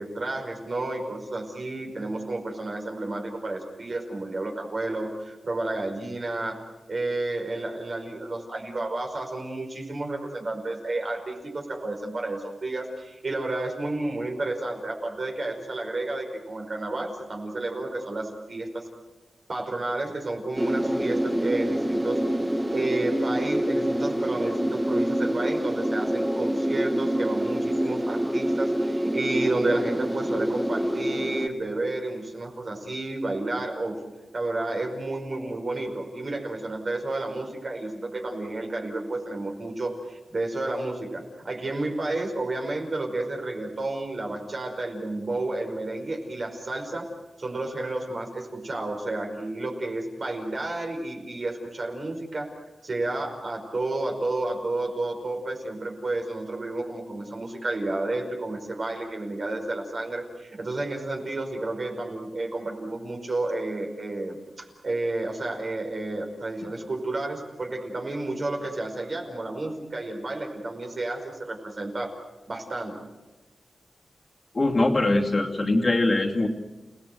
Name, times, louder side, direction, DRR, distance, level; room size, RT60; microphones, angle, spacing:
voice 1, 0.0-6.6 6.9-18.9 19.5-22.2 22.7-34.0 34.3-47.1 47.4-72.1 72.5-73.0, right 2 dB, 50° right, 2 dB, 5.2 m, -31 dB
sound 1, 20.6-31.5, equal, 10° right, 1.4 m, -26 dB
voice 2, 74.5-76.5, left 2 dB, 40° left, 1 dB, 2.6 m, -22 dB
29.5 x 18.5 x 7.9 m, 1.1 s
wide cardioid pair, 95°, 0 cm